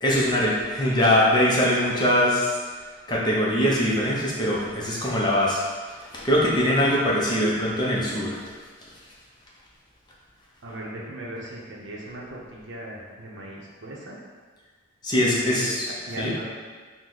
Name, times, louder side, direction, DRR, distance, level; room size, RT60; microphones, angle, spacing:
voice 1, 0.0-2.5 3.1-5.6 6.1-8.4 15.0-15.9 16.2-16.3, equal, 20° left, -5 dB, 0.6 m, -22 dB
voice 2, 10.6-14.2 15.3-16.4, right 1 dB, 60° right, -3 dB, 0.7 m, -37 dB
4.5 x 2.1 x 3.8 m, 1.5 s
head